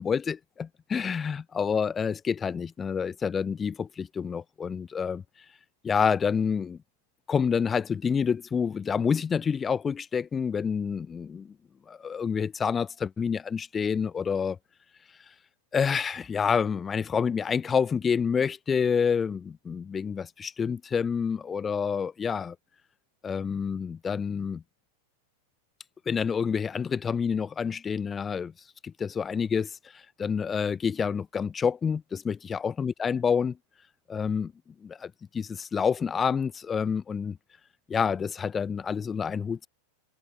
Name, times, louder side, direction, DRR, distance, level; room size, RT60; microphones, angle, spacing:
voice 1, 0.0-5.2 5.8-6.8 7.3-11.5 11.9-14.6 15.7-22.5 23.2-24.6 26.1-28.5 28.8-33.6 34.1-34.5 34.8-37.4 37.9-39.7, left 6 dB, 20° left, 7.8 m, -28 dB
figure-of-eight pair, 90°, 0 cm